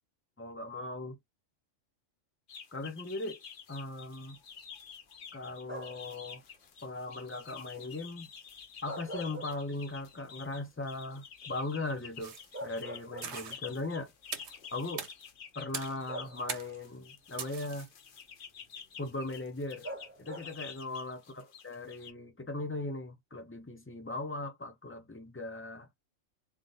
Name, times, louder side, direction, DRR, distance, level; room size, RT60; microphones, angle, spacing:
voice 1, 0.4-1.2 2.7-3.4 3.7-4.4 5.3-6.4 6.8-8.3 8.8-14.1 14.7-15.1 15.5-17.9 19.0-19.9 20.2-25.9, left 2 dB, 20° left, 0.3 m, -39 dB
sound 1, 2.5-22.1, left 7 dB, 50° left, 0.8 m, -50 dB
sound 2, 5.6-6.2 8.6-10.0 10.4-10.5 12.1-12.2 12.5-13.7 14.7-14.8 16.1-16.8 19.8-20.7, right 1 dB, 10° right, 0.9 m, -44 dB
sound 3, 12.2-12.6 13.2-13.6 14.3-14.6 15.0-15.1 15.7-16.0 16.5-16.8 17.4-17.9, right 7 dB, 65° right, 1.0 m, -40 dB
3.5 x 2.5 x 3.9 m
omnidirectional pair, 1.4 m